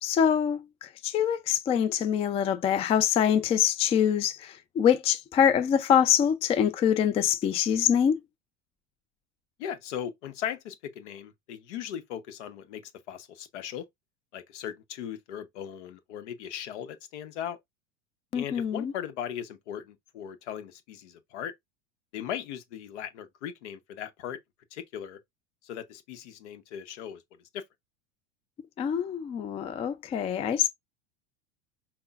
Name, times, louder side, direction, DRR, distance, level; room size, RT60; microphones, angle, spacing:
voice 1, 0.0-8.2 18.3-18.9 28.8-30.7, left 9 dB, 20° left, 0.3 m, -25 dB
voice 2, 9.6-12.8 13.1-13.9 14.3-17.6 18.3-21.5 22.1-24.4 24.7-25.2 25.6-27.2 27.5-27.6, left 9 dB, 75° left, 0.8 m, -38 dB
5.4 x 2.2 x 2.3 m
supercardioid pair, 110°, 35 cm